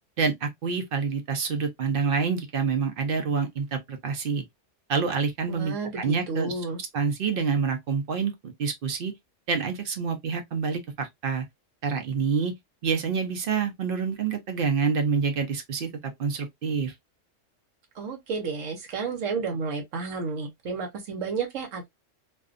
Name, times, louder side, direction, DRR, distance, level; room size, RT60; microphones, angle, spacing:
voice 1, 0.2-4.4 4.9-6.5 6.9-9.1 9.5-11.4 11.8-12.5 12.8-16.9, right 5 dB, 55° right, 0.7 m, -27 dB
voice 2, 5.5-6.8 17.9-21.9, right 4 dB, 80° right, 1.1 m, -31 dB
2.5 x 2.2 x 2.4 m
omnidirectional pair, 1.3 m